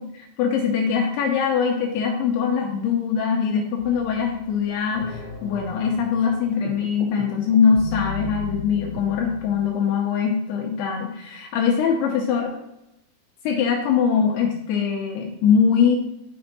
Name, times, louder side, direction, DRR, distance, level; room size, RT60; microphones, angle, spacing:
voice 1, 0.0-12.6 13.4-16.0, left 6 dB, 85° left, 1 dB, 2.5 m, -22 dB
sound 1, 3.8-9.6, left 4 dB, 65° left, 1.6 m, -37 dB
sound 2, 6.6-9.5, right 6 dB, 80° right, 3.0 m, -40 dB
6.7 x 4.3 x 4.1 m, 0.87 s
omnidirectional pair, 5.2 m